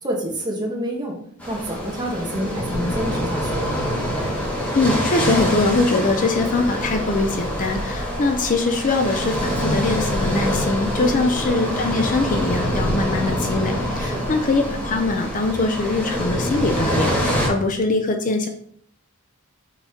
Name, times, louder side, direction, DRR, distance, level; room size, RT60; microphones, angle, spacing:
voice 1, 0.0-1.2 1.5-3.7 11.0-11.2 14.0-14.2, equal, 20° right, -1 dB, 1.5 m, -28 dB
sound 1, 1.4-17.5, equal, 5° left, 1.5 m, -25 dB
voice 2, 4.7-18.5, left 3 dB, 40° left, 5 dB, 0.6 m, -22 dB
5.7 x 4.2 x 4.3 m, 0.64 s
head